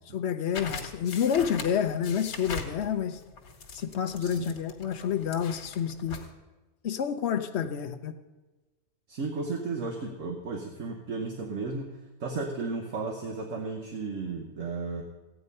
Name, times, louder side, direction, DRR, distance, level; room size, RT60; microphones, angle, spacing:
voice 1, 0.1-3.2 3.7-6.2 6.8-8.1, left 8 dB, 55° left, 7 dB, 1.0 m, -29 dB
sound 1, 0.5-6.3, left 4 dB, 85° left, 1.9 m, -41 dB
voice 2, 4.2-4.5 9.1-11.9 12.2-15.0, right 4 dB, 60° right, 2 dB, 1.4 m, -34 dB
14.5 x 9.1 x 5.4 m, 1.2 s
omnidirectional pair, 1.5 m